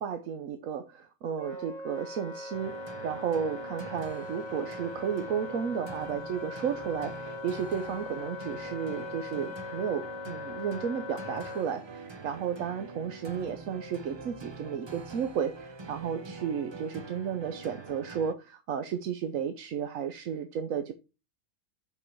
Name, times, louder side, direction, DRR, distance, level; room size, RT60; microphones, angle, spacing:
voice 1, 0.0-20.9, right 7 dB, 70° right, 1.1 m, -33 dB
Wind instrument woodwind instrument, 1.4-11.7, left 3 dB, 10° right, 4.9 m, -41 dB
sound 1, 2.5-18.3, right 3 dB, 35° right, 0.4 m, -44 dB
7.5 x 5.5 x 4.5 m
omnidirectional pair, 1.5 m